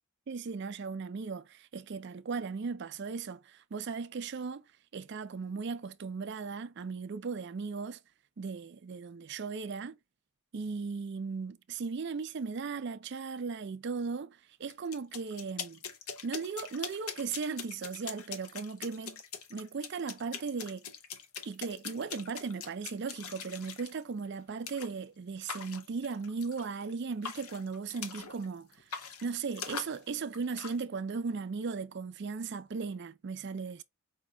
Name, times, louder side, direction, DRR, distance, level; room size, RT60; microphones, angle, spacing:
voice 1, 0.3-4.6 4.9-8.0 8.4-10.0 10.5-15.8 16.2-19.2 19.5-20.8 21.5-28.7 29.2-33.8, right 5 dB, 50° right, 0.4 m, -37 dB
sound 1, 14.7-23.9 24.7-24.9 25.5-26.9 27.2-28.5 28.7-30.8, left 6 dB, 75° left, 0.8 m, -43 dB
5.0 x 2.8 x 3.3 m
head